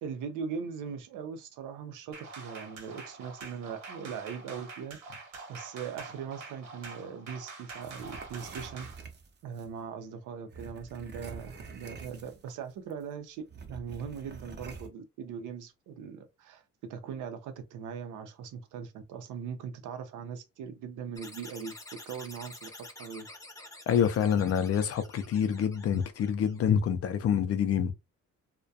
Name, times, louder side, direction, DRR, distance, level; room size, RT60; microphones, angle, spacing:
voice 1, 0.0-9.1 9.4-13.4 13.7-16.6 16.9-21.8 22.1-23.3, right 6 dB, 85° right, 0.6 m, -40 dB
sound 1, 2.1-9.0, right 4 dB, 65° right, 0.9 m, -46 dB
sound 2, 7.8-9.7 10.5-12.6 12.9-13.0 13.5-14.9, right 4 dB, 35° right, 0.6 m, -46 dB
sound 3, 21.2-26.6, left 2 dB, 10° left, 0.6 m, -48 dB
voice 2, 23.9-27.9, left 8 dB, 50° left, 0.4 m, -27 dB
2.3 x 2.1 x 2.6 m
cardioid pair, 90°, 30 cm